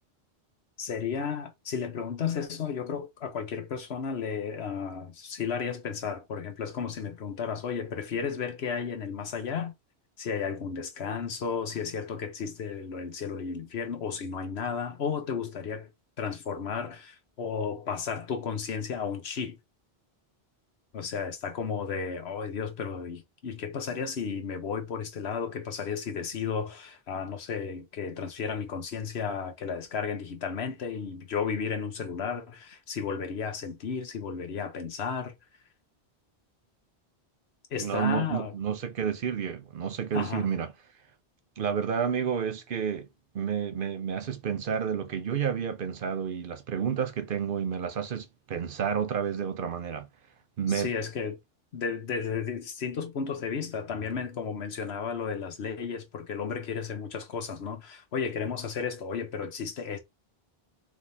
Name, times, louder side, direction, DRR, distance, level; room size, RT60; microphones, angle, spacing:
voice 1, 0.8-9.7 10.2-15.9 16.2-19.6 20.9-35.3 37.7-38.5 40.1-40.5 50.7-51.4 51.7-60.0, left 6 dB, 75° left, 1.2 m, -33 dB
voice 2, 37.8-40.7 41.6-43.1 43.3-50.1 50.6-50.9, right 7 dB, 60° right, 0.8 m, -30 dB
4.2 x 3.5 x 2.7 m
omnidirectional pair, 1.1 m